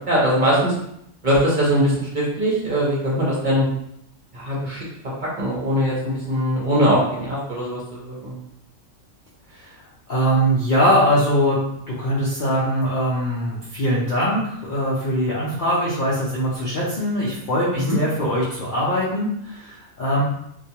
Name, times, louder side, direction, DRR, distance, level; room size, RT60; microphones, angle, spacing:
voice 1, 0.1-0.7 1.2-3.7 4.3-4.8 5.2-8.3 17.7-18.0, equal, 45° right, -6 dB, 0.7 m, -21 dB
voice 2, 10.1-11.6 11.9-20.2, equal, 55° left, -8 dB, 0.5 m, -22 dB
2.2 x 2.2 x 2.8 m, 0.75 s
omnidirectional pair, 1.4 m